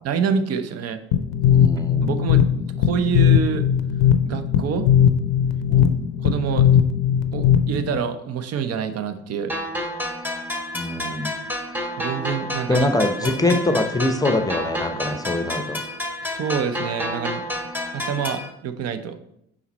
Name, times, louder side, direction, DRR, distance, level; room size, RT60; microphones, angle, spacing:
voice 1, 0.0-1.0 2.0-3.6 4.2-4.9 6.2-6.7 7.3-9.5 12.0-12.9 13.2-13.6 16.2-17.4 17.9-19.2, right 7 dB, 55° right, 10 dB, 0.7 m, -27 dB
sound 1, 1.1-8.0, left 9 dB, 80° left, 0.5 m, -18 dB
voice 2, 1.5-2.2 5.7-6.0 10.7-11.3 12.7-15.8, left 2 dB, 10° left, 7 dB, 0.7 m, -23 dB
sound 2, 9.5-18.5, left 1 dB, 5° right, 1.2 m, -29 dB
5.8 x 4.1 x 4.2 m, 0.78 s
hypercardioid pair, 60°, 30 cm